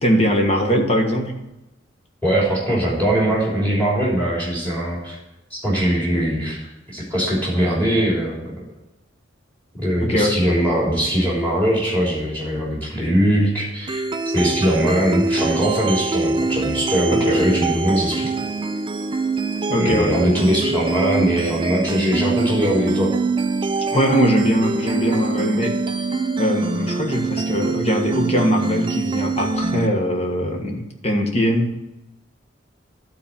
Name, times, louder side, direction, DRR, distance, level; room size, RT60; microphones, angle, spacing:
voice 1, 0.0-1.4 10.0-10.4 17.1-17.4 19.7-20.1 23.9-25.8 26.4-31.7, equal, 30° left, 2 dB, 1.5 m, -21 dB
voice 2, 2.2-5.1 5.5-6.6 6.9-8.5 9.8-18.3 19.7-23.1, equal, 10° left, -5 dB, 3.2 m, -21 dB
sound 1, 13.9-29.9, right 3 dB, 25° right, 0.4 m, -24 dB
12.0 x 4.2 x 7.3 m, 0.94 s
head